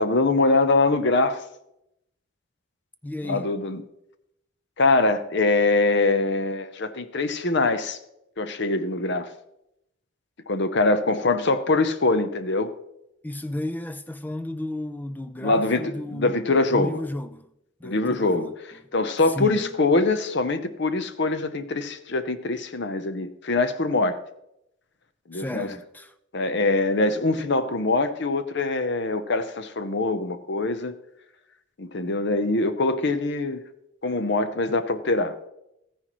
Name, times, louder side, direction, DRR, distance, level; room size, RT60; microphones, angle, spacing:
voice 1, 0.0-1.4 3.2-3.8 4.8-8.0 8.4-9.3 10.5-12.7 15.4-17.0 17.8-18.5 18.9-24.2 25.3-25.7 26.3-31.0 31.8-33.6 34.0-35.3, left 3 dB, 55° left, 0.7 m, -23 dB
voice 2, 3.0-3.5 13.2-16.4 16.7-17.5 17.8-18.6 19.3-19.7 25.3-26.1 34.7-34.8, left 1 dB, 10° left, 0.3 m, -33 dB
14.0 x 9.9 x 3.1 m
head